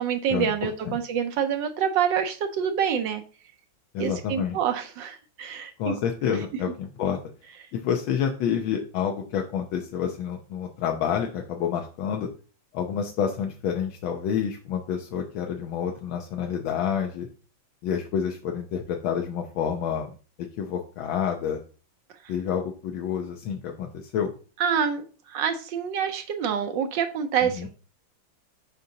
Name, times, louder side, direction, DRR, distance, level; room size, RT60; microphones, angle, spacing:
voice 1, 0.0-3.2 4.0-6.0 24.6-27.7, right 8 dB, 75° right, 7 dB, 1.3 m, -27 dB
voice 2, 3.9-4.6 5.8-7.2 7.7-12.3 12.7-17.3 17.8-20.1 20.6-21.6 22.3-24.3 27.6-27.7, left 8 dB, 85° left, 3 dB, 1.5 m, -28 dB
6.7 x 5.2 x 2.7 m, 0.36 s
omnidirectional pair, 2.1 m